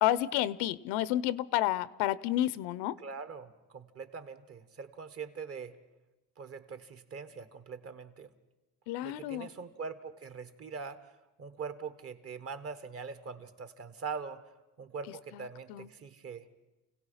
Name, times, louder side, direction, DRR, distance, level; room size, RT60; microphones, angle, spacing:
voice 1, 0.0-3.0 8.9-9.5 15.7-15.9, left 14 dB, 85° left, 19 dB, 0.7 m, -30 dB
voice 2, 3.0-5.8 6.4-8.3 9.0-11.1 11.4-14.4 14.8-16.5, right 5 dB, 35° right, 11 dB, 1.3 m, -42 dB
29.5 x 17.0 x 5.7 m, 1.1 s
cardioid pair, 140°, 39 cm